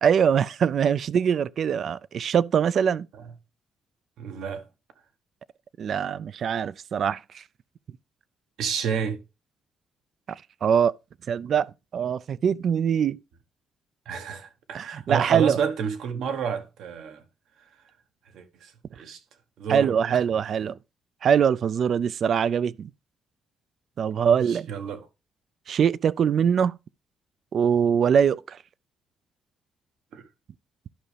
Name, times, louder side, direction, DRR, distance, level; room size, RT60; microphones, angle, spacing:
voice 1, 0.0-3.1 5.8-7.4 10.3-11.0 11.3-13.2 14.7-15.6 19.7-20.8 21.2-22.9 24.0-24.7 25.7-26.8 27.5-28.6, right 7 dB, 60° right, 0.4 m, -23 dB
voice 2, 4.2-4.7 8.6-9.2 14.1-17.2 18.3-19.2 19.6-19.9 24.2-25.0 30.1-30.2, right 7 dB, 80° right, 1.2 m, -30 dB
11.5 x 5.5 x 3.3 m
cardioid pair, 90°, 0 cm